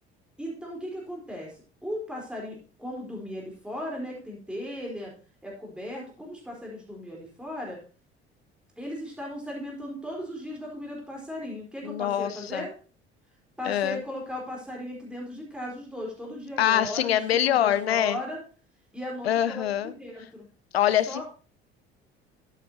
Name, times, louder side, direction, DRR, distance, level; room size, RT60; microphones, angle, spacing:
voice 1, 0.4-1.5 1.8-5.1 5.4-7.8 8.8-12.7 13.6-18.4 18.9-20.5 21.1-21.2, equal, 5° right, -2 dB, 4.1 m, -37 dB
voice 2, 11.8-12.7 13.6-14.0 16.6-18.2 19.2-19.9 20.7-21.2, left 11 dB, 75° left, 15 dB, 0.6 m, -24 dB
13.0 x 8.3 x 2.9 m, 0.39 s
figure-of-eight pair, 55°, 31 cm